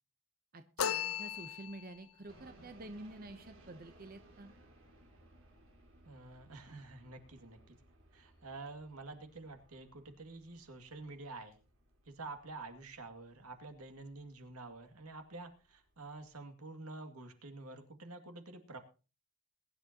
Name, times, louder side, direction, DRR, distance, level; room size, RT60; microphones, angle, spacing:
voice 1, 0.5-4.5, right 2 dB, 40° right, 9 dB, 0.8 m, -49 dB
sound 1, 0.8-2.0, left 9 dB, 80° left, 0.6 m, -36 dB
sound 2, 2.3-16.4, right 1 dB, 65° right, 4.3 m, -63 dB
voice 2, 6.0-7.8 8.1-11.6 12.1-18.8, right 3 dB, 90° right, 6 dB, 2.3 m, -48 dB
22.0 x 10.5 x 2.9 m, 0.33 s
head